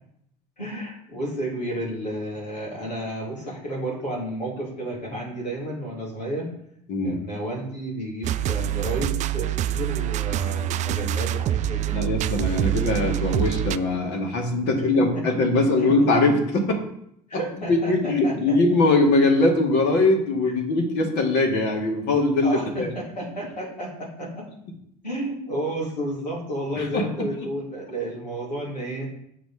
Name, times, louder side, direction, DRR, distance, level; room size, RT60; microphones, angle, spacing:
voice 1, 0.6-6.5 7.0-12.0 12.6-12.9 14.9-15.2 15.5-15.9 17.3-18.6 22.4-24.5 25.0-29.1, right 1 dB, 85° left, -5 dB, 3.0 m, -31 dB
voice 2, 6.9-7.2 11.9-16.8 17.6-22.9 26.7-27.1, left 2 dB, 55° left, 2 dB, 2.3 m, -21 dB
sound 1, 8.2-13.8, right 13 dB, 35° right, 0.4 m, -25 dB
7.7 x 5.1 x 5.0 m, 0.73 s
figure-of-eight pair, 65°, 21 cm